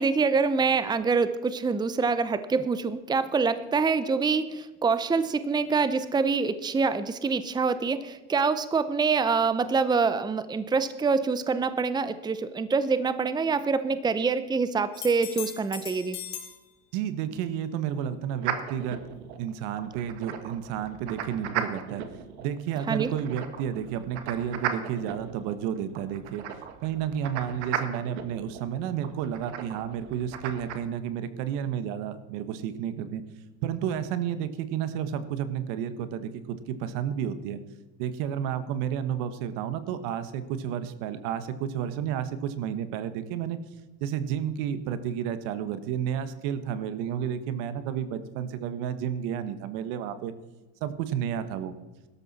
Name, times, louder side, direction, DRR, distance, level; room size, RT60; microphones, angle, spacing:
voice 1, 0.0-16.2 22.9-23.1, right 4 dB, 15° right, 13 dB, 0.7 m, -25 dB
sound 1, 14.9-16.6 20.3-20.4, left 10 dB, 55° left, 3.2 m, -38 dB
voice 2, 16.9-22.0 22.4-26.5 26.8-33.2 33.6-37.6 38.0-43.6 44.0-50.3 50.8-51.7, right 9 dB, 70° right, 12 dB, 1.4 m, -31 dB
sound 2, 18.4-30.8, right 9 dB, 85° right, 1.7 m, -37 dB
17.0 x 13.0 x 4.2 m, 1.1 s
supercardioid pair, 100°, 33 cm